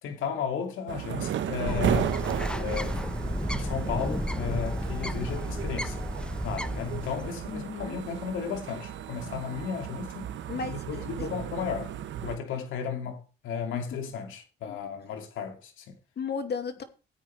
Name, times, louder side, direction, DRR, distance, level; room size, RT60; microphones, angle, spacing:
voice 1, 0.0-2.1 2.6-3.1 3.5-6.0 6.4-10.3 10.7-12.0 12.2-16.0, left 6 dB, 85° left, 2.7 m, -34 dB
sound 1, 0.9-12.4, right 10 dB, 70° right, 1.3 m, -35 dB
Bird, 1.7-7.6, equal, 5° left, 1.2 m, -32 dB
voice 2, 7.5-8.0 10.5-11.3 13.7-13.8 14.7-14.8 16.2-16.8, left 5 dB, 55° left, 2.6 m, -35 dB
16.0 x 9.1 x 3.4 m
cardioid pair, 90°, 20 cm